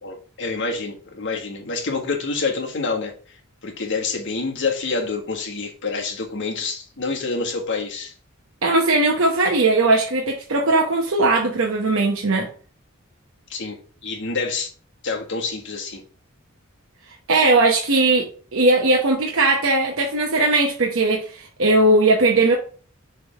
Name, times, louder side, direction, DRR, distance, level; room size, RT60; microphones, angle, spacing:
voice 1, 0.0-3.1 3.6-8.1 13.5-14.7 15.0-16.0, left 4 dB, 60° left, 1.6 m, -27 dB
voice 2, 8.6-12.5 17.3-22.6, right 2 dB, 65° right, 0.9 m, -19 dB
6.5 x 3.4 x 5.0 m
head